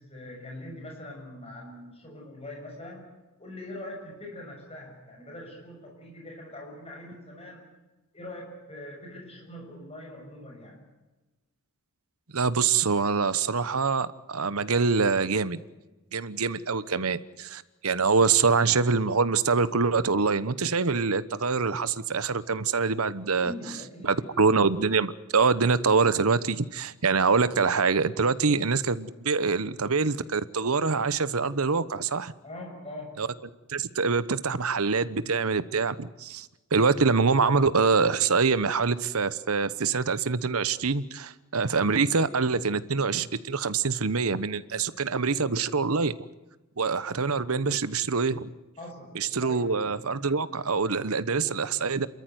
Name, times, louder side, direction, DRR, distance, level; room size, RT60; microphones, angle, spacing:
voice 1, 0.0-7.6 8.1-10.8 23.3-24.3 32.4-33.2 48.8-49.6 51.3-51.6, left 1 dB, 30° left, 0 dB, 6.4 m, -42 dB
voice 2, 12.3-15.6 16.1-23.5 24.0-32.3 33.2-33.3 33.7-46.1 46.8-48.5 49.1-52.1, right 4 dB, 80° right, 16 dB, 1.0 m, -25 dB
28.0 x 13.5 x 9.4 m, 1.1 s
head